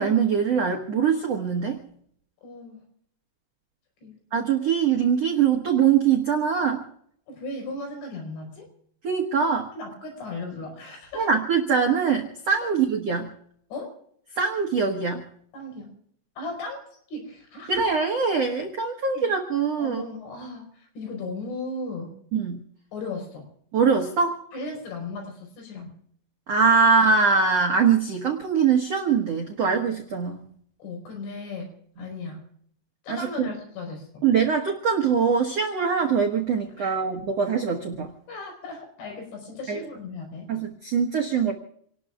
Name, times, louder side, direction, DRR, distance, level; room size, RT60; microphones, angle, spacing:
voice 1, 0.0-1.8 4.3-6.8 9.0-9.7 11.1-13.3 14.3-15.2 17.7-20.0 22.3-22.6 23.7-24.4 26.5-30.5 33.1-33.5 34.2-38.1 39.7-39.8 40.5-41.5, right 6 dB, 85° right, 0 dB, 1.4 m, -23 dB
voice 2, 2.4-2.8 4.0-4.2 7.3-8.7 9.8-11.3 12.6-12.7 13.7-13.9 15.5-15.9 16.4-16.8 17.1-17.8 19.1-19.3 19.8-22.1 22.9-23.5 24.5-26.0 30.8-32.4 33.0-34.2 36.8-37.0 38.3-40.5, left 3 dB, 90° left, 2 dB, 7.1 m, -36 dB
28.5 x 19.0 x 2.4 m, 0.65 s
omnidirectional pair, 5.2 m